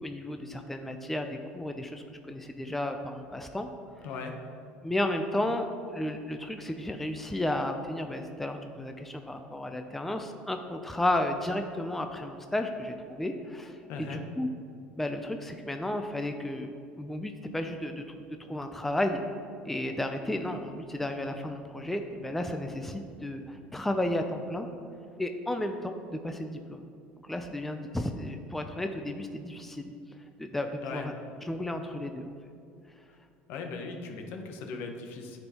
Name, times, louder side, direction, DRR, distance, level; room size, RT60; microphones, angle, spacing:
voice 1, 0.0-3.7 4.8-14.5 15.0-16.7 17.0-18.0 18.5-19.2 19.7-24.7 25.2-26.8 27.2-29.9 30.4-31.1 31.4-32.3, left 1 dB, 5° left, 6 dB, 0.4 m, -33 dB
voice 2, 13.9-14.2 30.8-31.1 33.5-35.4, left 4 dB, 65° left, 4 dB, 0.8 m, -38 dB
9.6 x 4.4 x 2.9 m, 2.4 s
supercardioid pair, 105°, 4 cm